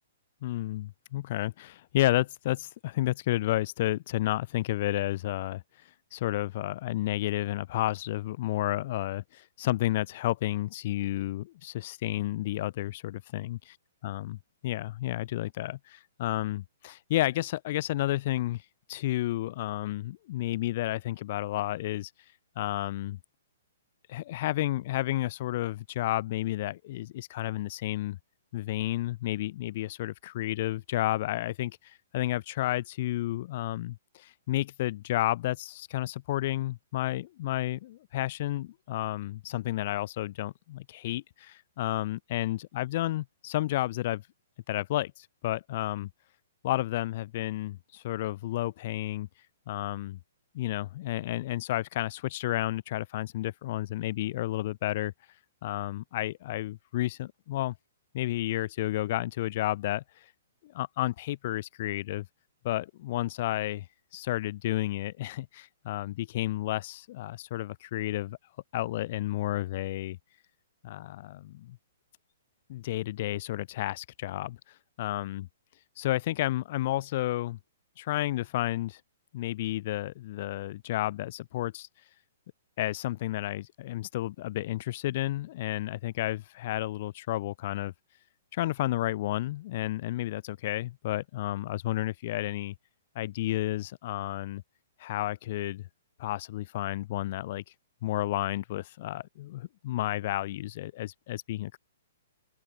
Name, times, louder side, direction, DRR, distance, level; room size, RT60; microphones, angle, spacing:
voice 1, 0.4-5.6 6.1-13.8 14.0-14.4 14.6-18.6 18.9-22.1 22.6-23.2 24.1-28.2 28.5-44.2 44.7-46.1 46.6-49.3 49.7-50.2 50.5-55.1 55.6-57.7 58.1-60.3 60.6-62.3 62.6-63.9 64.1-68.4 68.7-70.2 70.8-71.8 72.7-74.6 75.0-75.5 76.0-77.6 78.0-79.0 79.3-81.9 82.8-87.9 88.5-92.7 93.2-94.6 95.0-95.8 96.2-97.6 98.0-101.8, left 15 dB, 50° left, 3.7 m, -31 dB
open air
hypercardioid pair, 120°, 0 cm